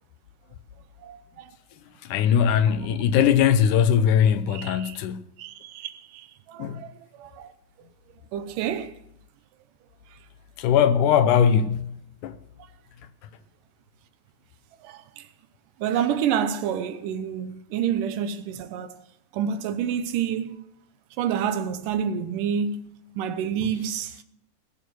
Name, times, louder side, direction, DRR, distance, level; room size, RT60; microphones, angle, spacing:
voice 1, 1.0-1.5 4.5-5.0 5.4-6.9 7.2-7.5 8.3-8.9 14.8-15.2 15.8-19.0 19.3-20.6 21.2-24.1, right 8 dB, 80° right, 2.4 m, -28 dB
voice 2, 2.0-5.3 6.6-6.8 10.6-12.0 12.2-12.4, left 8 dB, 80° left, 2.2 m, -20 dB
19.5 x 7.2 x 6.3 m
omnidirectional pair, 3.8 m